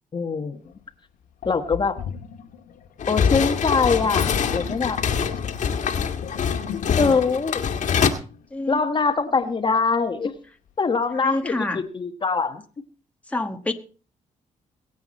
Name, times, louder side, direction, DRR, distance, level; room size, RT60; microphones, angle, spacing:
voice 1, 0.1-0.6 1.4-2.0 3.1-5.0 7.0-7.7 8.7-10.3 10.8-12.6, left 4 dB, 35° left, 8 dB, 1.3 m, -23 dB
Sink (filling or washing), 0.7-0.8 1.4-8.7, left 8 dB, 85° left, 1.6 m, -38 dB
sound 1, 3.0-8.1, left 7 dB, 65° left, 1.8 m, -24 dB
voice 2, 11.2-11.8 13.3-13.7, left 2 dB, 10° left, 5 dB, 1.3 m, -27 dB
22.5 x 8.2 x 4.2 m, 0.38 s
cardioid pair, 95°, 14 cm